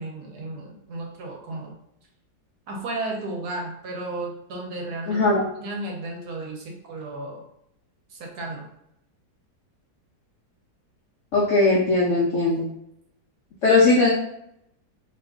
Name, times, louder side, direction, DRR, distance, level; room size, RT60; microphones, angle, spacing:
voice 1, 0.0-1.7 2.7-5.3 5.6-7.4 8.1-8.7, right 2 dB, 70° right, 0 dB, 1.1 m, -33 dB
voice 2, 5.1-5.5 11.3-12.7 13.6-14.1, left 3 dB, 75° left, -4 dB, 0.7 m, -19 dB
2.8 x 2.4 x 3.5 m, 0.78 s
omnidirectional pair, 1.9 m